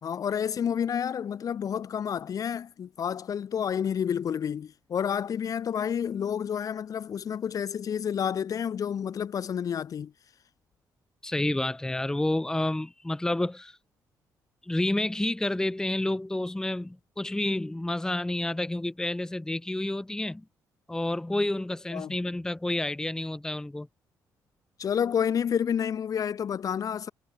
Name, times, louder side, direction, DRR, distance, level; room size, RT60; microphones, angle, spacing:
voice 1, 0.0-10.1 21.9-22.1 24.8-27.1, left 8 dB, 55° left, 1.3 m, -29 dB
voice 2, 11.2-13.8 14.6-20.4 20.9-23.9, left 1 dB, 10° left, 0.8 m, -29 dB
cardioid pair, 80°, 7 cm